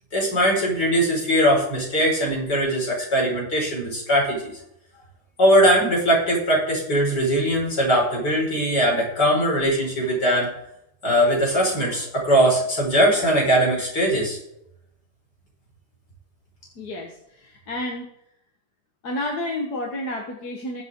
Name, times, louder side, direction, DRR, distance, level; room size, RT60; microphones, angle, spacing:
voice 1, 0.1-4.5 5.4-10.5 11.0-14.4, equal, 85° left, -3 dB, 5.8 m, -20 dB
voice 2, 16.8-18.1 19.0-20.8, left 1 dB, 70° left, 1 dB, 2.1 m, -30 dB
21.5 x 7.8 x 3.8 m, 0.78 s
omnidirectional pair, 1.7 m